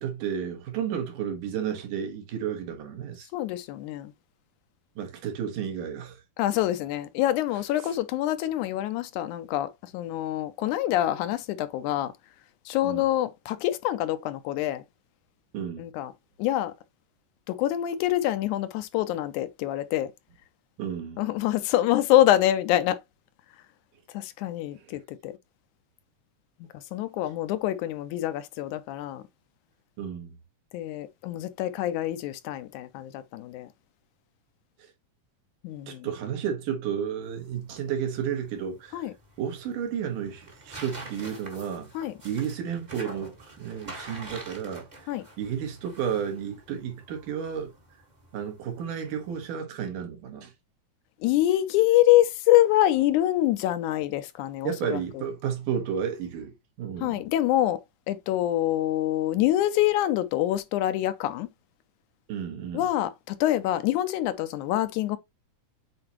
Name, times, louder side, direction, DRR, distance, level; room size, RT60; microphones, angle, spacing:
voice 1, 0.0-3.3 5.0-6.2 7.8-7.9 12.8-13.1 15.5-15.9 20.8-21.2 30.0-30.3 35.9-39.1 39.4-41.9 42.2-45.1 45.4-47.7 48.3-50.5 54.6-56.5 56.8-57.2 62.3-62.9, right 8 dB, 80° right, 3.2 m, -32 dB
voice 2, 3.3-4.1 6.4-12.1 12.7-14.8 15.8-16.1 16.4-16.7 17.5-20.1 21.2-23.0 24.1-25.3 26.7-29.2 30.7-33.7 35.6-36.1 38.9-39.1 41.9-42.2 45.1-45.2 51.2-55.2 57.0-57.8 58.1-61.5 62.7-65.2, left 14 dB, 80° left, 1.9 m, -25 dB
sound 1, 37.2-49.5, right 2 dB, 30° right, 0.8 m, -47 dB
7.8 x 4.2 x 2.9 m
omnidirectional pair, 3.7 m